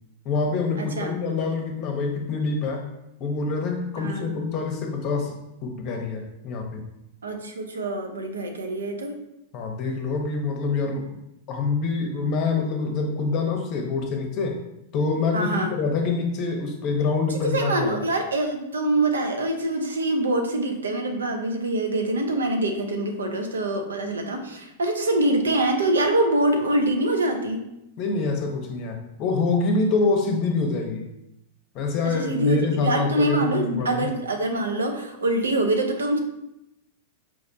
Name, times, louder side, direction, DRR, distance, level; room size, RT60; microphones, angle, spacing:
voice 1, 0.2-2.9 3.2-6.8 9.5-11.2 11.5-14.6 14.9-18.1 28.0-31.1 31.7-34.1, left 4 dB, 45° left, 3 dB, 0.7 m, -26 dB
voice 2, 0.8-1.2 4.0-4.3 7.2-9.1 15.3-15.7 17.4-27.6 32.1-36.2, right 2 dB, 80° right, 5 dB, 0.5 m, -24 dB
4.6 x 2.1 x 2.6 m, 0.86 s
hypercardioid pair, 100°, 0 cm